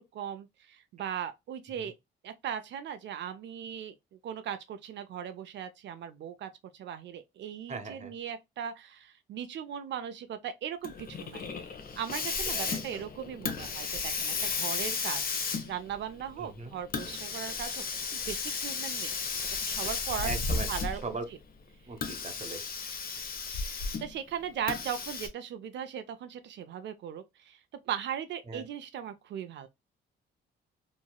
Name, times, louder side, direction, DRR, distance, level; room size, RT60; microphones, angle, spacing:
voice 1, 0.1-1.9 2.2-17.8 18.1-19.1 19.6-20.3 20.7-21.4 24.0-27.6 27.8-29.7, right 9 dB, 65° right, 0.5 m, -38 dB
voice 2, 7.7-8.1 12.5-13.0 16.4-16.7 20.2-20.7 21.0-21.3 21.9-22.6 28.5-28.6, right 4 dB, 35° right, 0.8 m, -39 dB
Hiss, 10.8-21.2 21.9-24.2 24.7-25.3, left 5 dB, 50° left, 0.7 m, -34 dB
3.0 x 2.6 x 2.2 m
cardioid pair, 90°, 20 cm